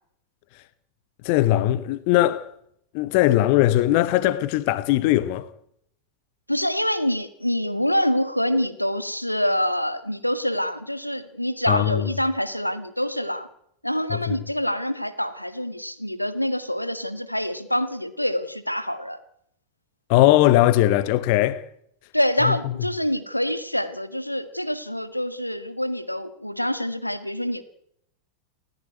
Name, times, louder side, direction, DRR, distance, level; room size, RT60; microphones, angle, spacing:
voice 1, 1.2-2.5 2.9-5.5 11.7-12.1 14.1-14.3 20.1-21.6 22.5-22.6, left 15 dB, 45° left, 1.1 m, -19 dB
voice 2, 6.5-13.5 13.8-19.2 22.1-27.6, equal, 90° left, 1.9 m, -26 dB
29.0 x 15.5 x 9.4 m
figure-of-eight pair, 90°, 0 cm